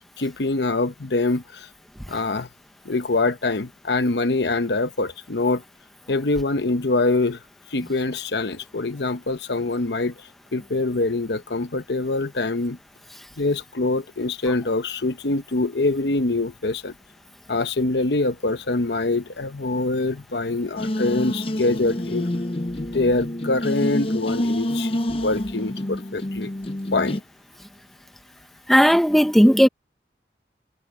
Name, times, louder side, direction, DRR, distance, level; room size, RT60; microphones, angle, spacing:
voice 1, 0.2-1.7 2.1-2.5 2.8-5.6 6.1-7.4 7.7-10.1 10.5-12.8 13.4-16.9 17.5-22.3 22.8-24.9 25.2-26.5 26.9-27.2, left 2 dB, 80° left, 1.0 m, -24 dB
sound 1, 20.8-27.2, left 1 dB, 30° left, 0.7 m, -27 dB
voice 2, 28.7-29.7, equal, ahead, 0.9 m, -15 dB
head